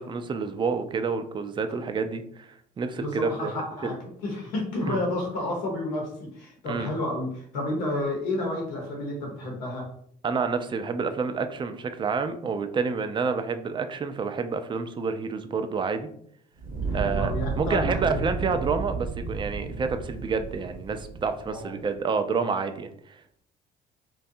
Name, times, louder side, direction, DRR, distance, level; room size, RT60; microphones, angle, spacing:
voice 1, 0.0-2.5 2.8-3.9 4.8-5.0 6.6-6.9 10.2-16.1 16.9-23.2, right 5 dB, 25° right, 8 dB, 0.3 m, -29 dB
voice 2, 3.0-3.9 4.2-9.8 16.9-18.3 21.5-21.7, left 1 dB, 85° left, -1 dB, 0.8 m, -31 dB
Fire, 16.6-21.7, right 4 dB, 40° right, 0.7 m, -32 dB
2.6 x 2.2 x 2.6 m, 0.65 s
hypercardioid pair, 55°, 21 cm